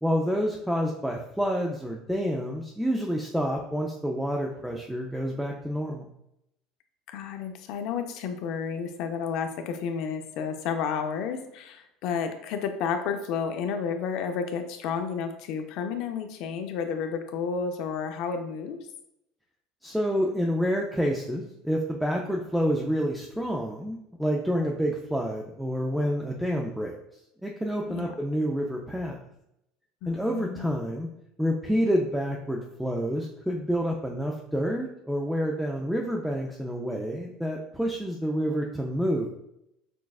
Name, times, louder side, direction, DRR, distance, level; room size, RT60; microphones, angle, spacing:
voice 1, 0.0-6.1 19.8-26.9 27.4-29.2 30.1-31.1 31.4-39.3, equal, ahead, 0 dB, 0.3 m, -28 dB
voice 2, 7.1-18.8 27.9-28.1 30.0-30.7, left 6 dB, 60° left, 7 dB, 0.5 m, -31 dB
6.1 x 2.3 x 2.4 m, 0.80 s
cardioid pair, 140°, 0 cm